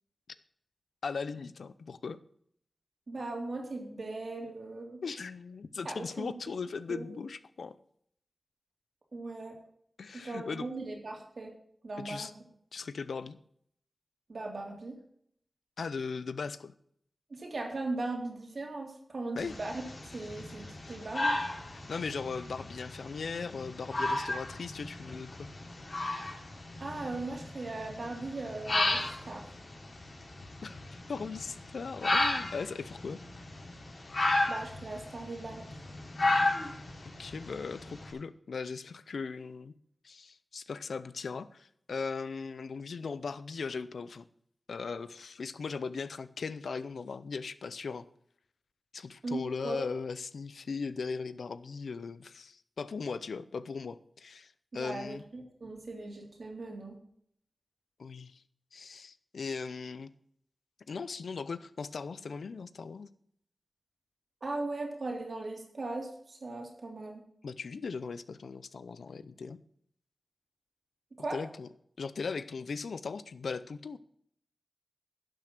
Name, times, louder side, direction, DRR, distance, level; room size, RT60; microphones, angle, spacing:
voice 1, 1.0-2.2 5.0-7.8 10.0-10.7 12.0-12.3 12.7-13.4 15.8-16.7 19.3-19.6 21.7-25.5 30.6-33.2 37.0-39.7 40.0-44.2 44.7-48.1 48.9-55.2 58.0-58.4 58.7-60.1 60.9-63.1 67.4-69.6 71.3-71.7 72.0-74.0, left 5 dB, 90° left, 15 dB, 0.6 m, -38 dB
voice 2, 3.1-5.0 5.8-6.3 6.9-7.2 9.1-9.6 10.1-11.5 11.8-12.4 14.3-15.0 17.3-19.8 20.1-21.4 26.8-29.5 34.5-35.7 49.2-49.9 54.7-57.0 64.4-67.2 71.2-71.4, right 2 dB, 65° right, 1 dB, 3.1 m, -38 dB
sound 1, 19.4-38.1, left 2 dB, 60° left, 3.5 m, -34 dB
11.5 x 6.3 x 6.0 m, 0.67 s
cardioid pair, 50°, 0 cm